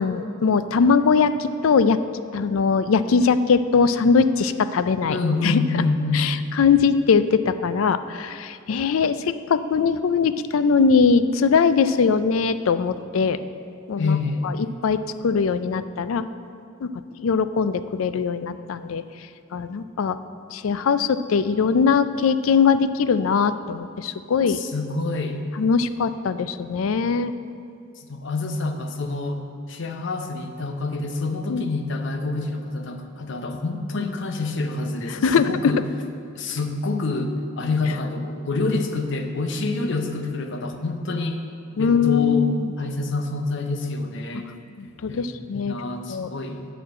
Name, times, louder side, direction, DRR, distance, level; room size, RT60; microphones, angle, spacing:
voice 1, 0.0-2.0 2.3-5.2 5.4-5.6 6.1-9.2 9.5-13.4 13.9-14.2 14.4-14.6 14.8-16.2 16.8-16.9 17.2-19.0 19.5-20.2 20.5-24.6 25.6-27.3 31.5-31.6 35.2-35.5 41.8-42.7 44.8-45.7 46.1-46.3, left 5 dB, 85° left, 13 dB, 0.4 m, -21 dB
voice 2, 5.1-6.3 14.0-14.5 24.5-25.4 28.0-35.8 36.3-41.4 41.8-42.5 42.8-44.5 45.1-45.3 45.5-46.7, left 3 dB, 60° left, 6 dB, 0.7 m, -27 dB
9.2 x 4.4 x 7.4 m, 2.6 s
head